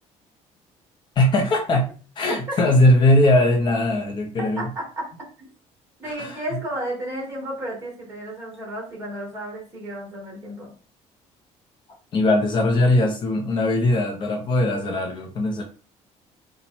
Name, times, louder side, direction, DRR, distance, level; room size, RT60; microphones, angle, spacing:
voice 1, 1.2-4.7 6.2-6.4 12.1-15.6, left 1 dB, 40° left, -1 dB, 0.9 m, -20 dB
voice 2, 6.0-10.7, right 1 dB, 20° right, -2 dB, 2.1 m, -33 dB
4.2 x 2.5 x 4.3 m, 0.38 s
cardioid pair, 160°, 13 cm